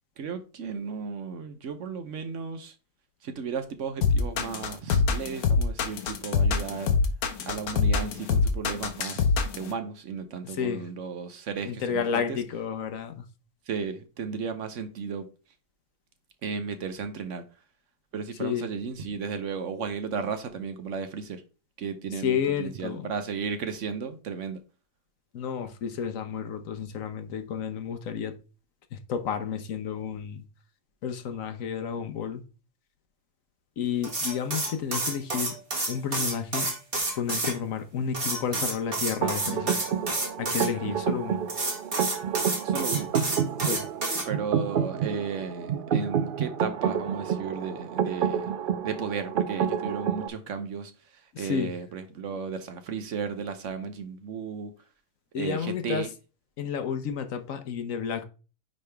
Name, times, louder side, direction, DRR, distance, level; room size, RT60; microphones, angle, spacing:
voice 1, 0.2-2.7 3.2-7.0 7.5-9.2 9.6-12.4 13.7-15.3 16.4-17.4 18.1-21.4 21.8-24.6 42.6-43.1 44.3-48.5 48.8-50.9 51.4-54.7 55.4-56.1, right 6 dB, 60° right, 1.0 m, -34 dB
sound 1, 4.0-9.7, left 5 dB, 90° left, 1.4 m, -24 dB
voice 2, 10.4-10.9 11.6-13.3 18.4-18.7 22.1-23.1 25.3-28.3 28.9-30.4 31.0-32.4 33.8-35.6 35.9-36.7 37.2-39.8 40.4-41.4 43.6-43.8 51.3-51.7 55.3-56.1 56.6-58.2, left 7 dB, 70° left, 1.1 m, -31 dB
sound 2, 34.0-37.5 38.1-40.7 41.5-44.2, right 2 dB, 40° right, 2.0 m, -29 dB
sound 3, 39.2-50.3, right 8 dB, 80° right, 0.4 m, -29 dB
9.3 x 3.4 x 3.4 m
omnidirectional pair, 1.5 m